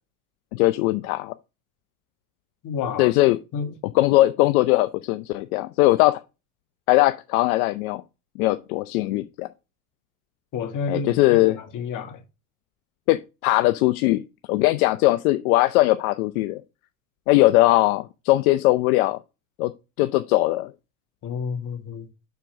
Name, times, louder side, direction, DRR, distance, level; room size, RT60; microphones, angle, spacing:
voice 1, 0.5-1.3 3.0-3.4 3.9-6.2 6.9-8.0 8.4-9.5 10.9-11.6 13.1-14.2 14.5-16.6 17.3-19.2 19.6-19.7 20.0-20.7, left 18 dB, 70° left, 0.6 m, -20 dB
voice 2, 2.6-3.1 3.5-3.7 10.5-11.1 11.6-12.2 21.2-22.1, left 5 dB, 45° left, 2.0 m, -29 dB
5.8 x 4.5 x 6.2 m
hypercardioid pair, 95°, 44 cm